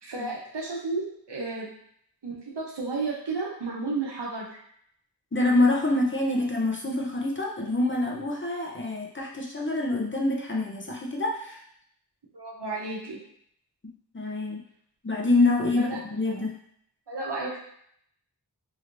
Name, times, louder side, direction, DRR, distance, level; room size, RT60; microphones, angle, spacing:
voice 1, 0.0-1.7 2.2-4.5 12.3-13.2 15.7-16.0 17.1-17.6, right 3 dB, 85° right, -4 dB, 0.9 m, -32 dB
voice 2, 5.3-11.6 13.8-14.6 15.0-16.5, left 2 dB, 30° left, -2 dB, 0.6 m, -26 dB
3.0 x 3.0 x 2.5 m, 0.68 s
wide cardioid pair, 55°, 41 cm